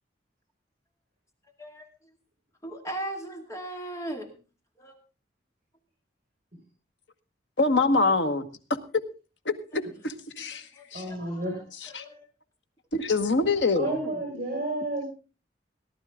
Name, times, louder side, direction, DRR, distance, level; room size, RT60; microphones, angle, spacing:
voice 1, 2.6-4.3 4.8-5.0 10.4-11.4 12.0-12.3 13.8-14.2, right 1 dB, 20° left, 4 dB, 2.3 m, -38 dB
voice 2, 7.6-8.5 9.4-10.6 10.9-11.0 11.9-12.0 12.9-13.9, left 3 dB, 85° left, 8 dB, 1.5 m, -25 dB
voice 3, 10.9-11.6 13.7-15.0, right 1 dB, 40° right, 1 dB, 5.6 m, -31 dB
18.5 x 12.0 x 3.7 m, 0.32 s
head